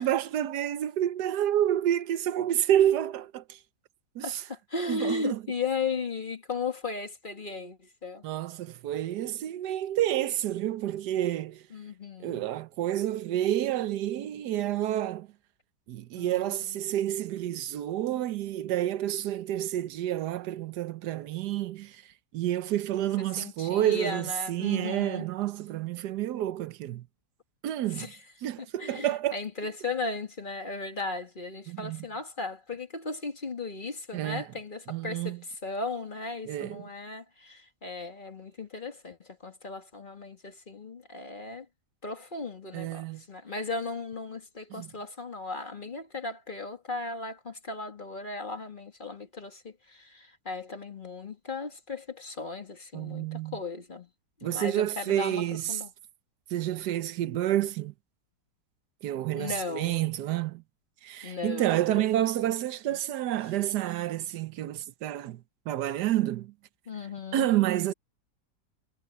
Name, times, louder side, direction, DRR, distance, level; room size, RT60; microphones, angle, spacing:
voice 1, 0.0-3.6 4.1-4.4 4.9-5.4 8.2-11.6 12.2-15.3 15.9-27.1 27.6-28.1 28.4-29.4 31.7-32.1 34.1-34.4 34.9-35.4 36.5-36.8 42.7-43.2 44.7-44.9 52.9-53.6 54.4-55.8 56.5-57.9 59.0-60.6 61.0-66.5 67.3-67.9, right 12 dB, 80° right, 1.3 m, -29 dB
voice 2, 4.2-8.2 11.7-12.4 16.2-16.8 23.2-25.2 27.9-28.2 28.6-41.7 42.0-54.1 54.4-55.4 55.7-55.9 59.4-60.1 61.2-62.0 62.4-62.5 62.9-63.0 66.9-67.5, left 3 dB, 30° left, 1.9 m, -36 dB
omnidirectional pair, 1.8 m